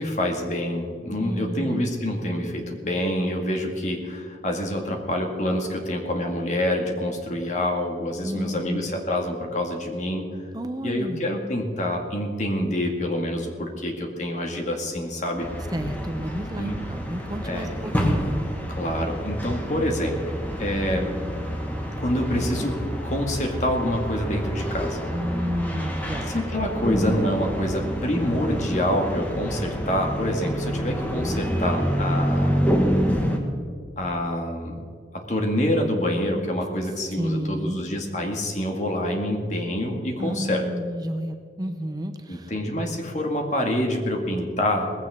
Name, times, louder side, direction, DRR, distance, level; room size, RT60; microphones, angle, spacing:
voice 1, 0.0-10.3 10.8-15.5 16.6-16.8 17.4-17.9 18.7-20.3 20.6-21.1 22.0-22.8 23.0-25.0 26.3-32.7 34.0-34.8 35.1-40.6 42.3-44.9, left 1 dB, 40° left, 2 dB, 2.0 m, -27 dB
voice 2, 1.2-1.9 8.2-8.9 10.5-11.2 15.7-18.2 25.1-26.4 37.2-37.8 40.2-42.5, equal, 20° right, 7 dB, 0.7 m, -31 dB
sound 1, 15.4-33.4, equal, 10° left, 1.5 m, -27 dB
19.0 x 15.5 x 3.7 m, 2.1 s
head